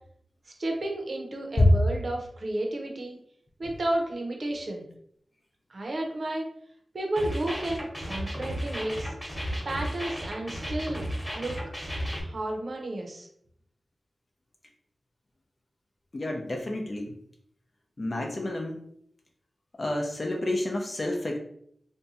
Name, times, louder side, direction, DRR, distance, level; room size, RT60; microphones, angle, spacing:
voice 1, 0.6-3.2 3.6-4.9 5.7-6.5 6.9-9.1 9.6-11.0 11.3-11.6 12.2-13.3, right 1 dB, 60° right, 1 dB, 0.7 m, -32 dB
sound 1, 7.2-12.2, equal, 5° left, 1.0 m, -34 dB
voice 2, 16.1-17.1 18.0-18.8 19.8-21.4, left 2 dB, 45° left, 1 dB, 0.5 m, -28 dB
2.6 x 2.2 x 4.0 m, 0.67 s
wide cardioid pair, 100°, 0 cm